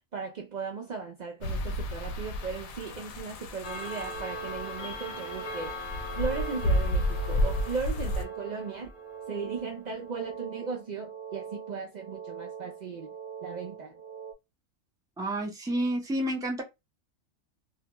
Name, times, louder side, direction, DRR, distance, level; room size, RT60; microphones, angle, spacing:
voice 1, 0.1-5.9 6.2-8.9 9.3-13.1 13.4-14.0, right 5 dB, 85° right, 0.3 m, -37 dB
sound 1, 1.4-8.2, equal, 85° left, 1.0 m, -31 dB
Clock, 3.6-9.6, left 3 dB, 55° left, 1.0 m, -42 dB
sound 2, 3.8-14.3, right 7 dB, 45° right, 0.8 m, -43 dB
voice 2, 15.2-16.6, right 1 dB, 5° right, 0.4 m, -29 dB
2.6 x 2.2 x 2.9 m
omnidirectional pair, 1.4 m